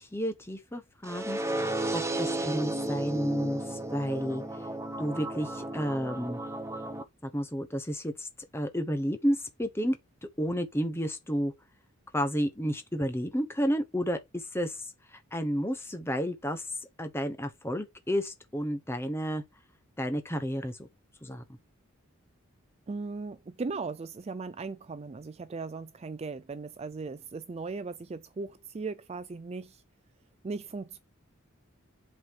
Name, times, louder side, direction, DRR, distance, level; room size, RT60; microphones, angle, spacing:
voice 1, 0.0-4.4 5.0-6.4 7.2-8.3 8.5-10.0 10.4-11.5 12.1-16.7 17.0-19.4 20.0-20.9 21.2-21.6, equal, 10° left, 1.1 m, -31 dB
sound 1, 1.0-7.0, right 2 dB, 15° right, 0.8 m, -33 dB
voice 2, 22.9-29.8 30.4-31.0, right 4 dB, 30° right, 0.4 m, -38 dB
7.8 x 4.2 x 4.7 m
head